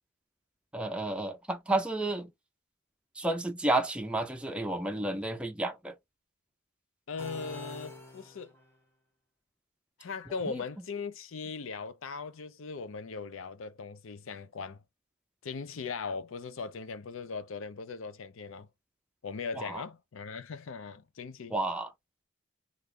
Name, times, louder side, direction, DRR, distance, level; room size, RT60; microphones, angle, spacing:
voice 1, 0.7-2.3 3.2-5.9 10.5-10.6 19.6-19.8 21.5-21.9, right 2 dB, 5° right, 0.4 m, -31 dB
voice 2, 7.1-8.5 10.0-14.8 15.4-18.7 19.2-21.6, left 5 dB, 70° left, 0.5 m, -39 dB
sound 1, 7.2-8.8, left 1 dB, 10° left, 1.2 m, -46 dB
3.1 x 2.4 x 3.6 m
head